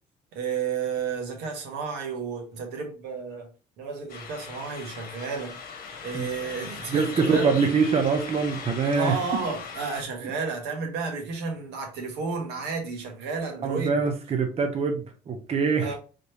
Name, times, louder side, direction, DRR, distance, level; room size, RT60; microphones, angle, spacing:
voice 1, 0.3-3.5 3.8-5.6 6.0-7.5 8.9-14.0 15.8-16.0, right 5 dB, 85° right, 1.5 m, -32 dB
sound 1, 4.1-10.0, left 5 dB, 60° left, 1.1 m, -39 dB
voice 2, 6.9-9.2 13.6-15.9, right 5 dB, 35° right, 0.8 m, -24 dB
4.1 x 3.4 x 3.0 m
cardioid pair, 110°, 17 cm